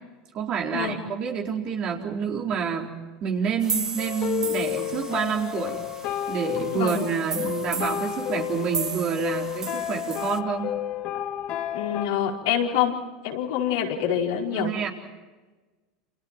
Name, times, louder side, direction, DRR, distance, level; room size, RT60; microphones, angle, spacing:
voice 1, 0.3-5.8 6.3-10.7 14.5-14.9, right 7 dB, 45° right, 0 dB, 4.2 m, -28 dB
sound 1, 3.6-10.4, right 5 dB, 25° right, 1.4 m, -35 dB
sound 2, 4.0-12.1, left 11 dB, 50° left, 2.4 m, -31 dB
voice 2, 6.7-7.0 11.7-12.9 13.2-14.7, left 9 dB, 70° left, -2 dB, 5.0 m, -26 dB
28.5 x 28.5 x 4.6 m, 1.3 s
hypercardioid pair, 85°, 2 cm